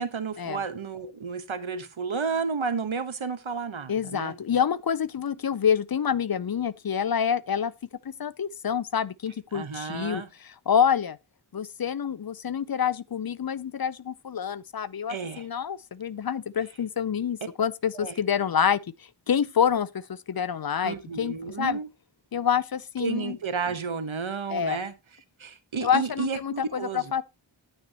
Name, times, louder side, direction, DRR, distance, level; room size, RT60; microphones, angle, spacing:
voice 1, 0.0-4.3 9.5-10.3 15.1-15.5 17.9-18.1 20.8-21.9 23.0-24.9 25.4-27.1, right 5 dB, 85° right, 1.2 m, -32 dB
voice 2, 3.9-7.7 8.0-11.2 11.5-18.8 19.3-21.8 22.3-23.4 24.5-24.8 25.8-27.2, left 8 dB, 50° left, 0.6 m, -27 dB
9.6 x 9.2 x 2.9 m
wide cardioid pair, 40°, 46 cm